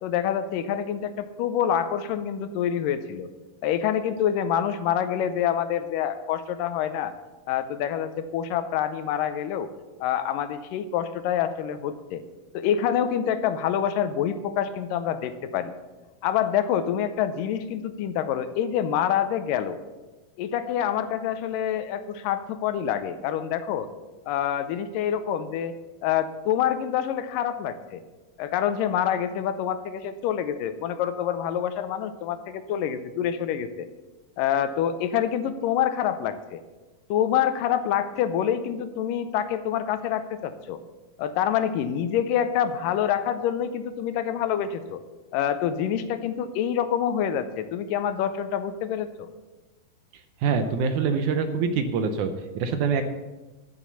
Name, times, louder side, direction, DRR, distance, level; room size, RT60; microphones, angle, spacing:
voice 1, 0.0-3.3 3.6-7.1 7.5-9.7 10.0-12.2 12.5-15.7 16.2-19.8 20.4-23.9 24.3-25.7 26.0-28.0 28.4-33.9 34.4-36.6 37.1-40.8 41.2-45.0 45.3-49.3, left 9 dB, 80° left, 11 dB, 2.3 m, -26 dB
voice 2, 50.4-53.0, right 5 dB, 75° right, 8 dB, 2.0 m, -25 dB
12.5 x 7.1 x 6.8 m, 1.2 s
omnidirectional pair, 4.0 m